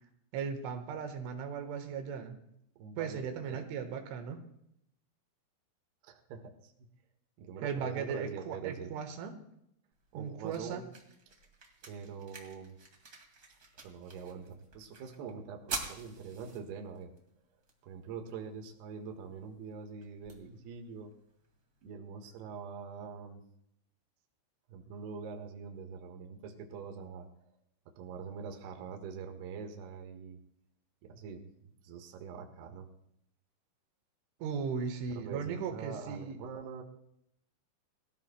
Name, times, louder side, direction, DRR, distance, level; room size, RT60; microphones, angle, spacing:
voice 1, 0.3-2.4 3.0-4.4 7.6-9.4 10.2-10.8 34.4-36.4, right 6 dB, 85° right, 5 dB, 3.8 m, -37 dB
voice 2, 2.8-3.6 6.0-6.7 7.4-8.9 10.1-10.8 11.8-12.8 13.8-17.1 17.8-21.1 21.8-23.4 24.7-27.3 28.0-30.4 31.0-32.9 35.1-36.8, right 6 dB, 70° right, 3 dB, 3.2 m, -44 dB
sound 1, 9.9-21.9, right 3 dB, 50° right, 1.0 m, -48 dB
23.0 x 15.0 x 2.2 m, 0.75 s
omnidirectional pair, 5.4 m